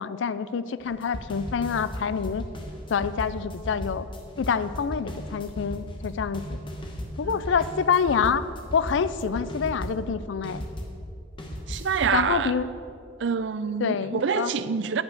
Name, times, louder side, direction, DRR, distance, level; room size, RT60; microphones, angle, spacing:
voice 1, 0.0-2.5 2.9-4.1 4.4-6.6 7.2-8.4 8.7-10.6 12.1-12.7 13.8-14.5, left 6 dB, 75° left, 0.4 m, -26 dB
sound 1, 0.8-11.0 11.4-12.2, equal, 25° left, 1.0 m, -36 dB
voice 2, 11.7-12.5 13.2-15.0, right 6 dB, 70° right, 0.4 m, -26 dB
10.0 x 5.7 x 6.5 m
head